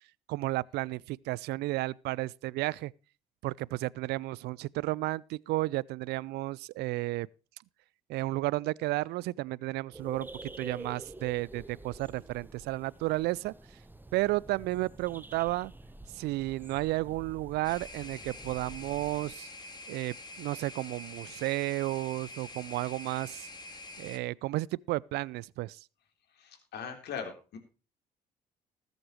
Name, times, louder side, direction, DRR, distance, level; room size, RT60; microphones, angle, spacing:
voice 1, 0.3-2.9 3.4-7.3 8.1-10.3 10.6-13.5 14.1-15.7 16.1-19.5 19.9-23.5 24.0-25.8, right 19 dB, 55° right, 0.4 m, -32 dB
sound 1, 9.9-19.3, right 2 dB, 10° right, 1.0 m, -48 dB
sound 2, 17.6-24.2, left 2 dB, 20° left, 2.8 m, -46 dB
voice 2, 26.3-27.6, left 7 dB, 55° left, 3.7 m, -40 dB
20.5 x 8.0 x 3.1 m
figure-of-eight pair, 50°, 20 cm